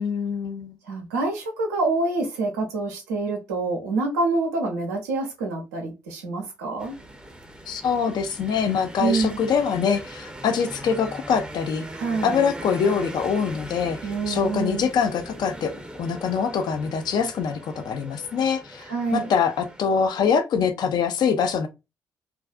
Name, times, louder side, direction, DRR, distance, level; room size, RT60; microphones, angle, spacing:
voice 1, 0.0-0.8 7.7-11.9 12.2-14.0 14.3-15.7 16.0-21.7, left 6 dB, 50° left, 0.5 m, -24 dB
voice 2, 0.8-6.9 9.0-9.4 11.9-12.4 14.0-14.9 18.8-19.3, right 3 dB, 75° right, 0.6 m, -26 dB
sound 1, 6.8-19.8, right 1 dB, 10° right, 0.6 m, -40 dB
2.4 x 2.3 x 2.2 m
figure-of-eight pair, 40°, 9 cm